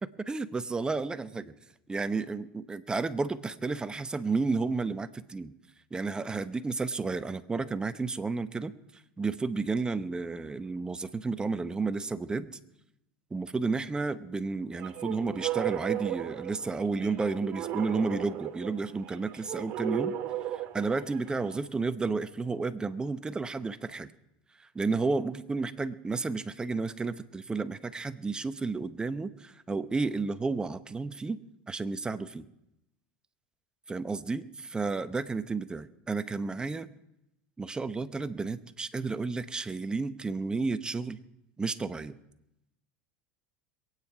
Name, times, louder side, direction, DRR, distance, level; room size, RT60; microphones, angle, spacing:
voice 1, 0.0-1.5 1.9-5.5 5.9-8.7 9.2-12.5 13.3-20.1 20.7-24.1 24.7-31.4 31.7-32.5 33.9-36.9 37.6-41.2 41.6-42.2, right 4 dB, 15° right, 11 dB, 0.9 m, -32 dB
sound 1, 14.7-21.6, right 12 dB, 55° right, 1.9 m, -36 dB
23.0 x 9.3 x 4.8 m, 0.84 s
supercardioid pair, 100°, 5 cm